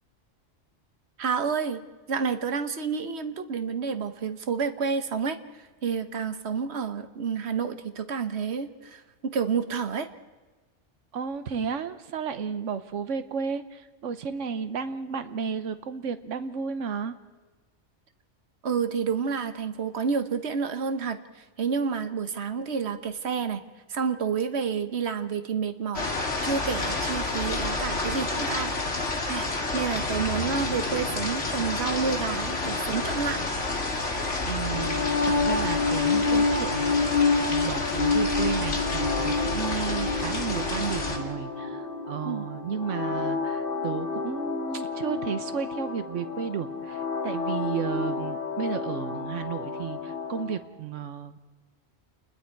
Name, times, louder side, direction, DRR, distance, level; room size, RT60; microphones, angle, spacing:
voice 1, 1.2-1.8 2.1-10.1 18.6-23.6 23.9-26.0 26.4-28.7 29.3-33.4 42.2-42.5, right 6 dB, 60° right, 10 dB, 1.4 m, -29 dB
voice 2, 11.1-17.1 34.4-51.4, right 7 dB, 85° right, 11 dB, 1.3 m, -33 dB
sound 1, 25.9-41.2, left 3 dB, 75° left, 2.5 m, -29 dB
sound 2, 34.6-50.6, left 4 dB, 45° left, 2.5 m, -29 dB
29.0 x 21.0 x 4.6 m, 1.3 s
omnidirectional pair, 1.2 m